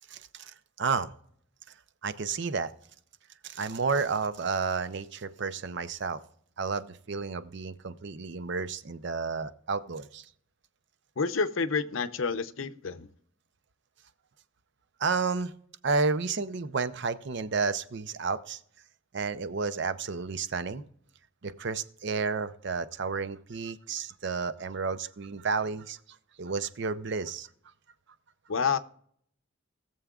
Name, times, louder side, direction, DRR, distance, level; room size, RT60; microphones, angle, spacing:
voice 1, 0.1-0.5 0.8-1.1 2.0-2.7 3.4-6.2 6.6-10.2 15.0-15.5 15.8-18.6 19.1-20.8 21.4-26.0 26.4-27.5, right 4 dB, 60° right, 0.6 m, -31 dB
voice 2, 11.2-13.1 28.5-28.8, left 5 dB, 70° left, 0.6 m, -29 dB
20.0 x 7.0 x 2.4 m
head